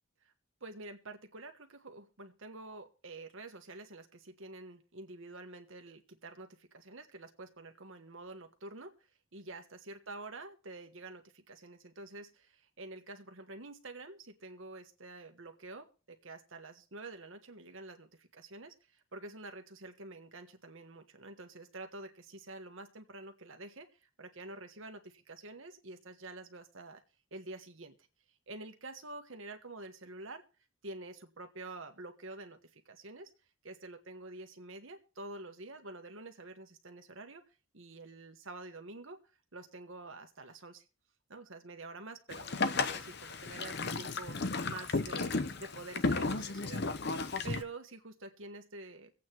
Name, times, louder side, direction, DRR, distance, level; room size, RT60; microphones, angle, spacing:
voice 1, 0.6-8.9 9.3-27.0 27.3-27.9 28.5-30.4 30.8-33.3 33.6-37.4 37.7-39.2 39.5-40.8 41.3-42.6 42.9-44.4 44.6-47.0 47.4-49.1, right 2 dB, 65° right, 6 dB, 1.4 m, -48 dB
Boat Water vehicle, 42.3-47.6, left 3 dB, 50° left, 0.8 m, -34 dB
24.5 x 8.4 x 3.0 m, 0.35 s
head